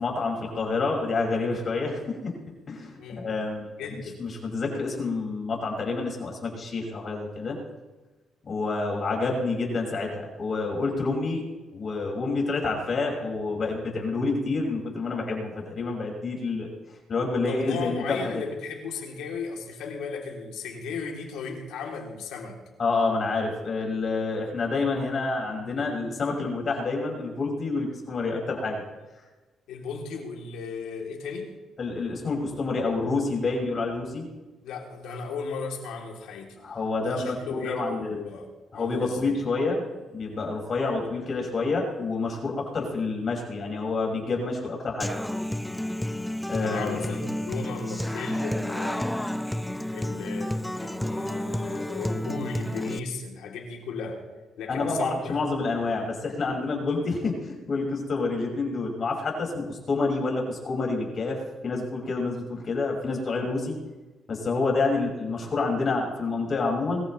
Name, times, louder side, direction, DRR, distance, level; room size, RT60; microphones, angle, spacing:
voice 1, 0.0-2.3 2.7-3.9 4.2-7.6 8.4-11.4 11.7-16.7 17.1-18.4 22.8-28.8 29.2-29.3 31.8-34.3 36.6-38.1 38.7-39.9 40.1-45.1 46.5-47.1 54.7-63.8 64.3-67.1, left 3 dB, 45° left, 0 dB, 5.7 m, -28 dB
voice 2, 3.0-3.3 3.8-4.2 17.5-22.6 29.7-31.5 34.6-36.6 37.0-39.3 46.6-49.1 49.9-54.3 54.6-55.4 56.6-56.7, left 4 dB, 90° left, 0 dB, 3.1 m, -35 dB
Human voice / Acoustic guitar, 45.0-53.0, left 1 dB, 5° left, 0.5 m, -31 dB
22.0 x 14.5 x 3.3 m, 1.2 s
cardioid pair, 90°, 0 cm